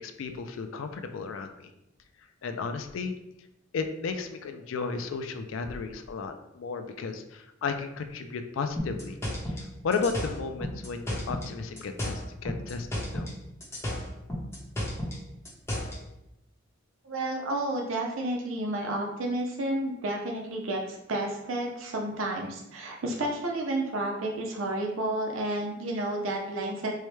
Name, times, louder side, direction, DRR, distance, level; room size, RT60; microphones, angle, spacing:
voice 1, 0.0-1.7 2.4-3.2 3.7-9.2 9.4-13.3, left 4 dB, 75° left, 7 dB, 0.4 m, -34 dB
sound 1, 8.8-11.5 11.8-13.4 13.6-16.0, left 1 dB, 15° left, 0.8 m, -33 dB
voice 2, 17.0-26.9, right 1 dB, 80° right, 0 dB, 0.6 m, -31 dB
4.6 x 2.1 x 3.1 m, 0.86 s
head